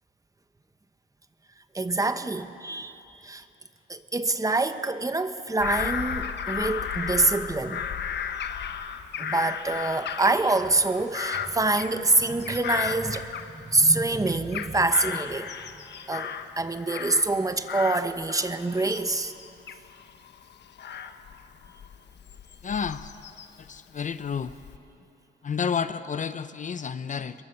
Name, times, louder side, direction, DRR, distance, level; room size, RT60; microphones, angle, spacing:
voice 1, 1.7-3.4 3.9-7.8 9.2-15.5 16.1-19.3, right 2 dB, 15° right, 10 dB, 1.2 m, -26 dB
Bird vocalization bird call bird song / Crow, 5.6-13.9 14.3-17.4 17.7-23.7 24.2-24.8, left 8 dB, 60° left, 1.3 m, -35 dB
voice 2, 22.6-23.1 23.6-24.5 25.4-27.3, left 6 dB, 40° left, 12 dB, 0.7 m, -30 dB
27.5 x 22.5 x 6.9 m, 2.7 s
cardioid pair, 90°, 20 cm